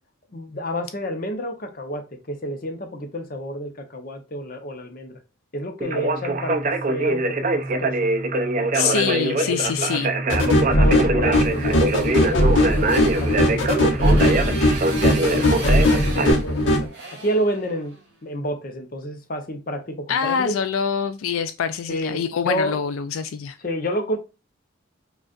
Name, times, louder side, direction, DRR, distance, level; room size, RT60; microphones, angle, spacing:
voice 1, 0.3-5.1 5.5-8.1 9.8-9.9 10.5-14.5 15.0-16.9 17.2-17.9 18.2-20.6 21.9-22.8 23.6-24.2, equal, 45° left, 0.7 m, -30 dB
Conversation, 5.8-16.3, right 2 dB, 40° right, 0.5 m, -23 dB
voice 2, 8.7-10.1 20.1-23.6, left 7 dB, 80° left, 0.3 m, -25 dB
sound 1, 10.3-16.9, left 1 dB, 65° left, 1.0 m, -19 dB
Motorcycle, 11.4-18.1, right 2 dB, 55° right, 2.2 m, -37 dB
5.0 x 2.4 x 2.4 m
head